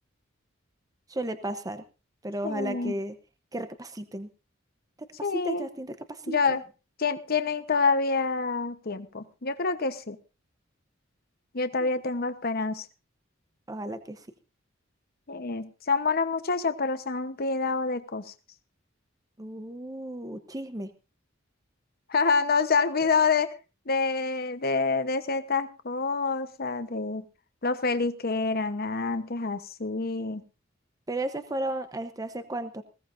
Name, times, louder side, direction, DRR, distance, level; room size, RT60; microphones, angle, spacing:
voice 1, 1.1-1.8 2.2-3.2 3.5-4.3 5.0-6.6 11.8-11.9 13.7-14.3 19.4-20.9 23.0-23.1 31.1-32.8, right 1 dB, 20° right, 9 dB, 0.9 m, -34 dB
voice 2, 2.4-2.9 5.2-5.7 6.3-6.6 7.0-10.2 11.5-12.9 15.3-18.3 22.1-23.5 23.9-27.2 27.6-30.4, left 4 dB, 50° left, 10 dB, 1.0 m, -27 dB
20.5 x 16.5 x 2.6 m, 0.32 s
head